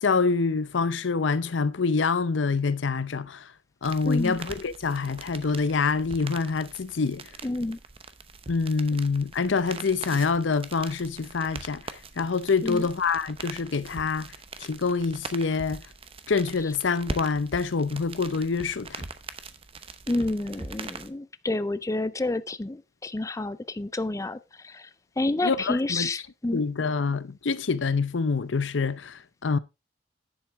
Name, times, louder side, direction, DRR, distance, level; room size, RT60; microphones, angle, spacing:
voice 1, 0.0-3.4 3.8-7.3 8.5-11.8 12.2-14.3 14.6-15.8 16.3-19.0 25.4-26.1 26.5-29.6, left 4 dB, 80° left, 0.6 m, -26 dB
sound 1, 3.8-21.1, right 4 dB, 30° right, 0.8 m, -42 dB
voice 2, 4.0-4.4 7.4-7.8 12.6-12.9 20.1-24.9 25.2-26.6, left 2 dB, 15° left, 0.4 m, -29 dB
10.5 x 7.6 x 3.5 m
head